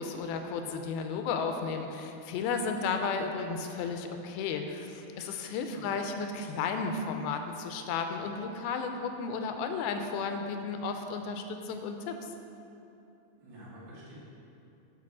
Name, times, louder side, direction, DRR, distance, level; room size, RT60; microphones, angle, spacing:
voice 1, 0.0-12.2, left 5 dB, 85° left, 5 dB, 2.5 m, -33 dB
voice 2, 5.4-5.9 13.4-14.2, right 1 dB, 90° right, -6 dB, 3.9 m, -50 dB
8.3 x 4.6 x 6.0 m, 2.8 s
omnidirectional pair, 4.3 m